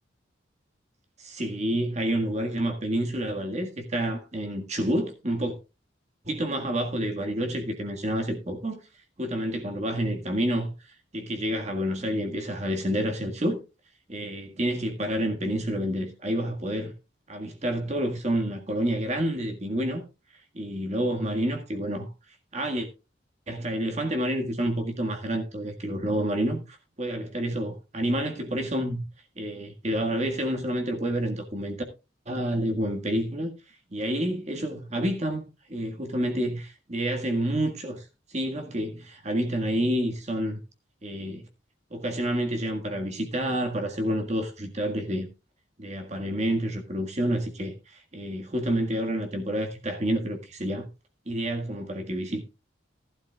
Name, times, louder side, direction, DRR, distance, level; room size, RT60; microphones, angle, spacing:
voice 1, 1.2-5.5 6.2-8.8 9.2-13.6 14.1-16.9 17.3-20.0 20.3-22.1 22.5-22.9 23.5-29.0 29.4-31.8 32.2-33.5 33.9-35.4 35.7-40.6 41.0-41.5 41.9-45.3 45.8-50.9 51.2-52.4, right 1 dB, 35° right, 1.7 m, -29 dB
16.0 x 11.5 x 2.3 m
head